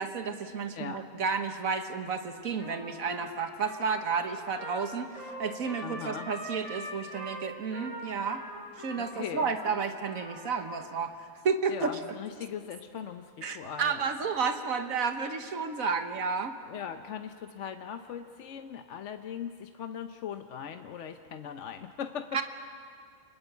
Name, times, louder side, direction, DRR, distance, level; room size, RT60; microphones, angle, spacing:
voice 1, 0.0-8.4 8.8-11.9 13.4-16.6 22.3-22.4, right 5 dB, 85° right, 7 dB, 1.6 m, -31 dB
Trumpet, 2.6-10.8, equal, 35° left, 8.0 m, -43 dB
voice 2, 5.8-6.3 8.9-9.6 11.7-14.0 16.7-22.4, left 8 dB, 65° left, 7 dB, 1.1 m, -39 dB
28.0 x 21.0 x 8.1 m, 2.3 s
omnidirectional pair, 1.4 m